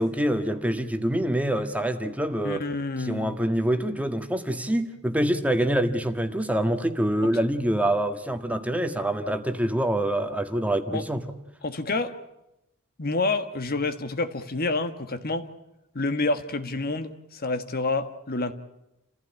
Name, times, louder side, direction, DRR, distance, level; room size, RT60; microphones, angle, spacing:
voice 1, 0.0-2.7 3.0-11.3, right 1 dB, 5° right, 7 dB, 1.5 m, -25 dB
voice 2, 2.4-3.4 7.2-7.3 10.9-11.0 11.6-12.1 13.0-15.5 15.9-18.5, left 3 dB, 45° left, 9 dB, 1.5 m, -28 dB
29.0 x 15.5 x 9.9 m, 0.88 s
head